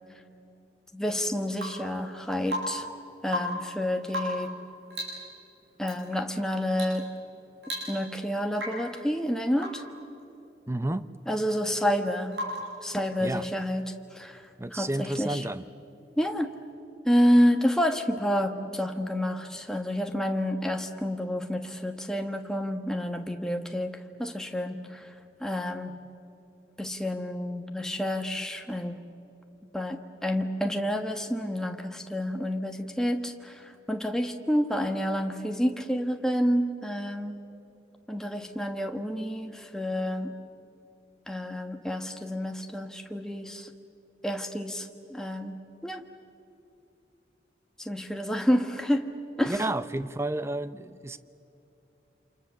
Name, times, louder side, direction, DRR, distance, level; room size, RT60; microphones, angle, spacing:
voice 1, 0.9-2.9 3.2-4.5 5.8-7.1 7.9-9.8 11.3-12.4 12.8-15.5 16.2-16.5 17.0-25.1 25.4-26.0 26.8-29.0 29.7-37.4 38.1-40.3 41.3-43.7 44.2-46.1 47.8-49.1 49.4-49.6, equal, 5° left, 4 dB, 1.4 m, -29 dB
Rain / Water tap faucet / Drip, 1.5-1.9 2.5-2.9 3.2-3.7 4.1-4.5 4.9-5.3 5.8-6.0 6.7-7.0 7.3-7.4 7.6-8.2 8.5-8.9 9.6-9.9 12.3-12.8 14.7-14.8, equal, 80° right, 6.7 m, -35 dB
voice 2, 10.7-11.0 13.2-13.5 14.6-15.7 49.5-51.2, right 1 dB, 15° right, 13 dB, 0.6 m, -31 dB
28.5 x 27.5 x 7.1 m, 2.8 s
head